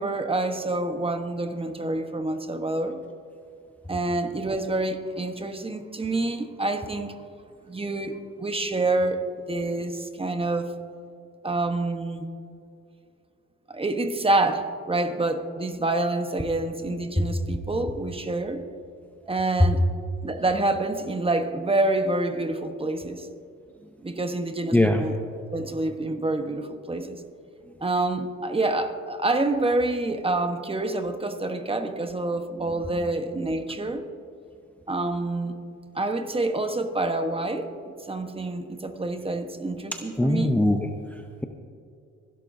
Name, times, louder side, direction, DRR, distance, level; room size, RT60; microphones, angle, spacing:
voice 1, 0.0-3.0 3.9-7.2 7.7-10.7 11.4-12.3 13.7-18.6 19.3-19.8 20.2-23.3 24.0-25.2 25.5-27.2 27.8-34.1 34.9-35.6 35.9-40.6, right 2 dB, 20° right, 7 dB, 1.1 m, -27 dB
voice 2, 24.7-25.0 40.2-40.9, left 1 dB, 5° left, 4 dB, 0.7 m, -20 dB
23.5 x 12.0 x 2.7 m, 2.4 s
cardioid pair, 90°, 30 cm